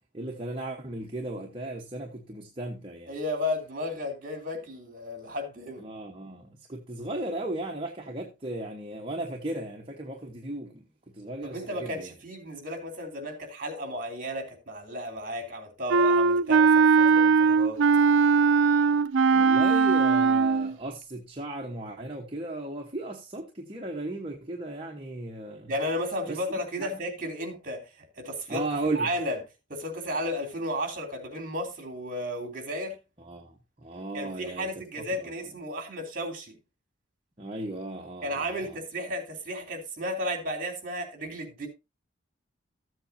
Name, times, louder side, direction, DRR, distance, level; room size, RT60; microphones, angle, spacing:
voice 1, 0.1-3.1 5.8-10.8 11.1-12.1 19.3-25.7 26.3-26.4 26.8-27.0 28.5-29.1 33.2-34.7 35.2-35.3 37.4-38.8, right 2 dB, 30° right, 1.1 m, -36 dB
voice 2, 3.1-5.9 11.4-17.8 25.7-28.6 28.9-29.4 29.7-33.0 34.1-36.6 38.2-41.7, equal, 45° right, 3.2 m, -33 dB
Wind instrument woodwind instrument, 15.9-20.7, right 5 dB, 80° right, 0.4 m, -20 dB
14.0 x 7.9 x 2.7 m
head